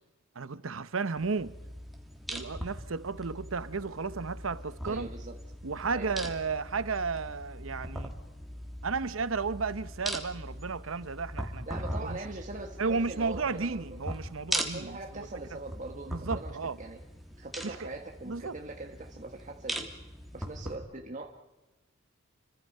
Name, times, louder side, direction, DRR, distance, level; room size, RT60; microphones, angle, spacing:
voice 1, 0.4-1.6 2.3-5.1 5.6-8.1 8.8-11.7 12.0-12.2 12.8-15.3 16.1-16.8 17.6-17.9 18.3-18.6, right 4 dB, 80° right, 0.9 m, -33 dB
sound 1, 1.2-20.8, equal, ahead, 2.7 m, -40 dB
voice 2, 4.8-5.4 5.9-6.3 11.7-14.0 14.7-17.0 17.4-19.9 20.3-21.3, right 2 dB, 40° right, 1.4 m, -42 dB
29.5 x 24.5 x 5.5 m
head